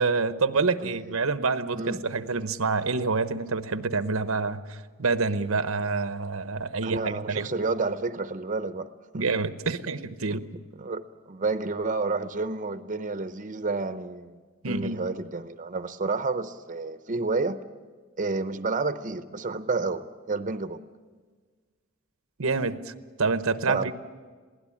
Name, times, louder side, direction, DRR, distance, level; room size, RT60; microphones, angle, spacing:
voice 1, 0.0-7.5 9.1-10.5 14.6-15.0 22.4-22.9 23.2-23.9, right 4 dB, 85° right, 11 dB, 0.9 m, -27 dB
voice 2, 0.8-1.2 1.8-2.0 6.8-8.9 9.1-9.3 10.3-10.4 10.8-14.4 14.7-17.6 18.2-20.8 23.7-23.9, right 3 dB, 40° right, 10 dB, 0.7 m, -30 dB
22.0 x 16.5 x 8.6 m, 1.5 s
head